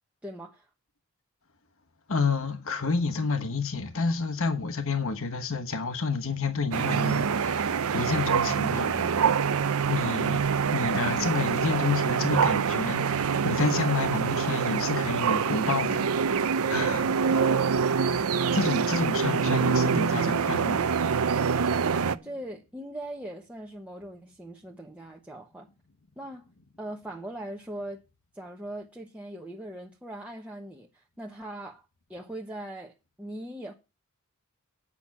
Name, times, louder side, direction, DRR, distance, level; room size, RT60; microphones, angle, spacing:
voice 1, 0.2-0.7 22.2-25.7 26.2-26.5 26.8-28.0 28.3-31.8 32.1-33.7, right 1 dB, 5° right, 1.0 m, -40 dB
voice 2, 2.1-9.3 9.9-10.4 10.7-17.7 18.5-20.8 22.1-22.2, left 4 dB, 65° left, 1.2 m, -30 dB
sound 1, 6.7-22.2, right 6 dB, 70° right, 0.6 m, -25 dB
8.6 x 6.1 x 7.2 m
head